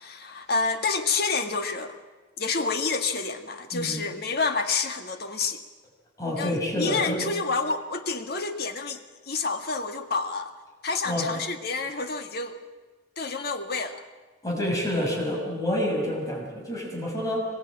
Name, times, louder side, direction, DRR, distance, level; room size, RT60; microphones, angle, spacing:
voice 1, 0.0-2.0 2.4-5.6 6.4-10.5 10.8-12.6 13.2-14.0, left 4 dB, 55° left, 6 dB, 1.8 m, -29 dB
voice 2, 3.7-4.1 6.2-7.3 11.0-11.3 14.4-17.5, left 1 dB, 15° left, -2 dB, 6.4 m, -28 dB
24.5 x 22.0 x 8.9 m, 1.4 s
head